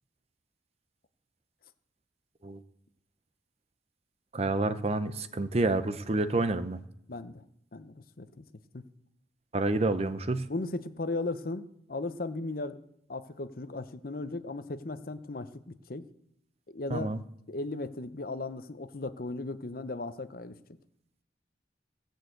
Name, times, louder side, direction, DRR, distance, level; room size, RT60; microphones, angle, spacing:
voice 1, 4.3-6.8 9.5-10.5 16.9-17.2, right 2 dB, 35° right, 11 dB, 0.7 m, -28 dB
voice 2, 7.1-7.4 7.7-8.5 8.7-8.9 10.5-12.8 13.1-15.5 15.9-16.1 16.7-17.1 17.5-20.6, left 2 dB, 55° left, 11 dB, 0.8 m, -36 dB
17.0 x 6.5 x 7.9 m, 0.78 s
head